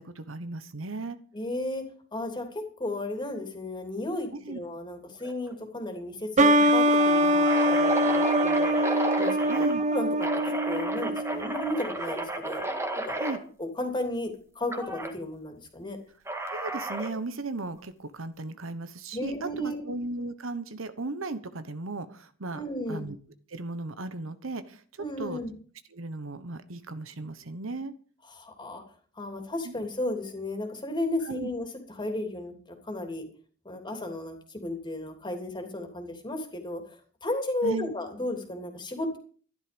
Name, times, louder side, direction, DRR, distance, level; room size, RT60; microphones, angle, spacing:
voice 1, 0.0-1.2 4.3-4.6 9.5-9.8 13.1-13.4 16.5-22.6 22.9-23.2 23.5-25.4 25.9-27.9 29.6-29.7 31.2-31.5 37.6-37.9, right 2 dB, 70° right, 11 dB, 1.2 m, -36 dB
voice 2, 1.3-1.8 2.1-8.8 9.2-9.7 9.9-12.6 13.1-13.2 13.6-16.0 19.1-19.8 22.5-23.1 25.0-25.5 28.3-28.8 29.2-31.7 32.0-33.2 33.6-39.2, left 1 dB, 25° left, 5 dB, 3.0 m, -34 dB
sound 1, 5.2-5.5 5.8-5.9 6.5-9.7 10.2-13.4 14.7-15.1 16.3-17.2, right 2 dB, 15° right, 1.8 m, -32 dB
sound 2, 6.4-11.8, equal, 35° right, 1.1 m, -23 dB
13.5 x 11.5 x 5.3 m, 0.43 s
head